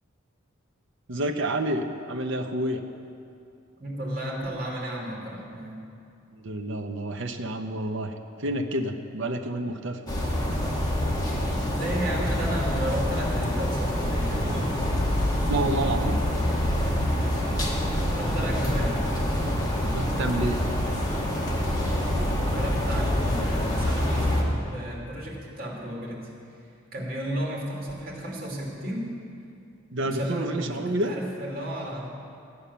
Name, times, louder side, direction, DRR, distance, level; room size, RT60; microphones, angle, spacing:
voice 1, 1.1-2.8 6.4-8.1 8.4-10.0 15.5-16.2 19.9-20.6 29.9-31.1, right 1 dB, 65° right, 5 dB, 0.9 m, -29 dB
voice 2, 3.8-5.8 11.8-14.7 18.0-19.2 22.5-26.3 26.9-29.1 30.0-32.1, equal, 50° right, -3 dB, 2.9 m, -33 dB
sound 1, 10.1-24.4, left 1 dB, 20° left, 1.6 m, -26 dB
13.0 x 8.8 x 6.9 m, 2.5 s
head